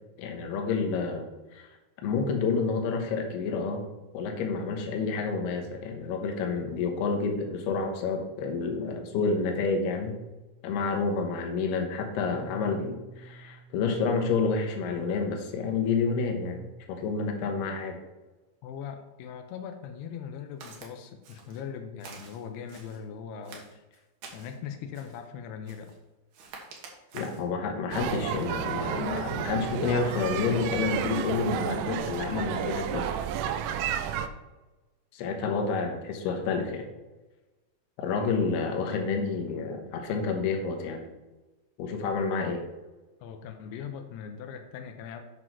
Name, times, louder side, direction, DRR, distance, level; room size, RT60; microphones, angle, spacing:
voice 1, 0.2-1.3 1.5-1.7 2.0-3.9 4.1-10.2 10.6-16.6 16.9-18.0 27.1-33.1 35.1-36.8 38.0-41.0 41.8-42.6, left 4 dB, 70° left, 3 dB, 2.8 m, -29 dB
Piano, 12.3-16.7, right 1 dB, 55° left, 0.6 m, -51 dB
voice 2, 18.6-24.0 24.3-26.0 43.2-45.2, left 7 dB, 85° left, 5 dB, 2.3 m, -40 dB
Walk footsteps, 20.6-20.9 21.2-21.6 22.0-23.0 23.4-24.6 24.9-25.2 25.7-26.0 26.3-27.5 27.9-28.2, right 4 dB, 65° right, 2.1 m, -47 dB
sound 1, 27.9-34.3, right 9 dB, 85° right, 3.1 m, -31 dB
9.0 x 6.2 x 4.6 m, 1.1 s
omnidirectional pair, 5.5 m